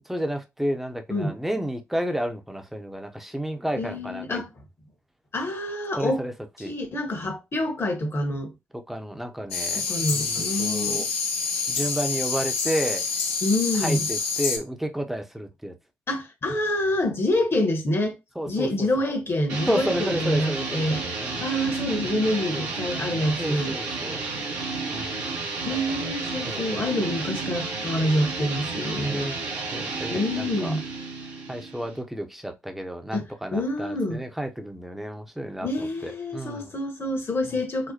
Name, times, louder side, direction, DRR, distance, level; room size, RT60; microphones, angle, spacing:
voice 1, 0.1-4.4 6.0-6.3 6.6-6.7 8.7-9.8 10.1-11.1 11.7-13.0 13.8-15.7 18.4-19.1 19.7-21.5 22.5-22.7 23.4-24.2 24.9-25.3 25.7-25.8 26.5-26.6 28.9-29.4 29.7-30.7 31.5-36.7, right 1 dB, 5° right, 0.7 m, -31 dB
voice 2, 3.8-4.5 5.3-6.2 6.6-8.5 9.8-11.1 13.4-14.1 16.1-18.2 18.5-21.0 21.4-23.8 25.6-29.3 30.1-30.8 33.1-34.2 35.6-37.9, left 1 dB, 35° left, 1.1 m, -27 dB
sound 1, 9.5-14.6, left 5 dB, 80° left, 0.5 m, -27 dB
sound 2, 19.5-32.0, right 3 dB, 70° right, 0.9 m, -31 dB
4.1 x 2.1 x 2.8 m
figure-of-eight pair, 40°, 7 cm